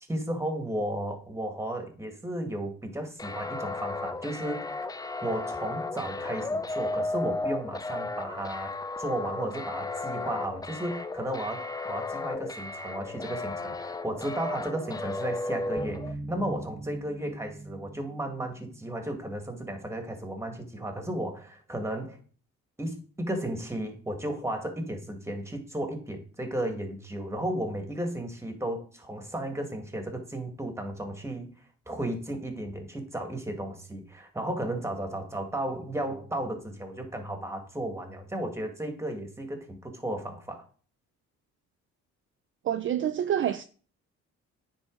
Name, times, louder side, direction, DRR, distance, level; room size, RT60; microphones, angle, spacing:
voice 1, 0.1-4.6 5.2-22.2 22.8-31.5 31.9-40.7, right 1 dB, 10° right, 1.9 m, -34 dB
sound 1, 3.2-16.1, left 2 dB, 15° left, 0.4 m, -34 dB
sound 2, 15.8-19.5, right 2 dB, 25° right, 1.2 m, -41 dB
voice 2, 42.6-43.6, right 10 dB, 40° right, 0.5 m, -27 dB
9.7 x 4.0 x 3.9 m
cardioid pair, 90°, 30 cm